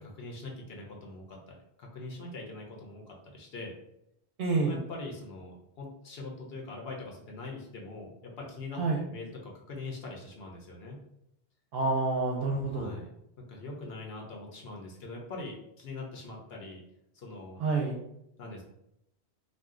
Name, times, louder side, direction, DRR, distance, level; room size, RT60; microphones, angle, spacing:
voice 1, 0.0-3.7 4.7-11.0 12.7-13.1 13.4-16.8 17.1-17.6 18.4-18.6, left 2 dB, 65° left, -1 dB, 0.9 m, -43 dB
voice 2, 4.4-4.8 8.8-9.0 11.7-12.9 17.6-18.0, right 3 dB, 65° right, 0 dB, 0.7 m, -28 dB
2.5 x 2.2 x 3.6 m, 0.79 s
omnidirectional pair, 1.1 m